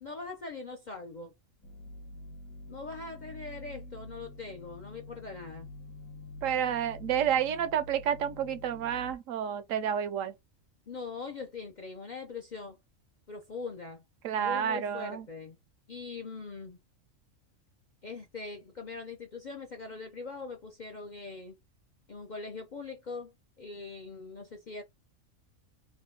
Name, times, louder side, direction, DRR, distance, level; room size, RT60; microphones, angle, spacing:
voice 1, 0.0-1.3 2.7-5.7 10.9-12.8 13.3-14.0 14.4-15.6 15.9-16.8 18.0-21.5 22.1-24.8, left 4 dB, 50° left, 0.5 m, -42 dB
sound 1, 1.6-9.1, left 2 dB, 75° left, 1.8 m, -47 dB
voice 2, 6.4-10.3 14.2-15.2, right 9 dB, 75° right, 0.9 m, -30 dB
3.6 x 2.2 x 3.7 m
omnidirectional pair, 1.4 m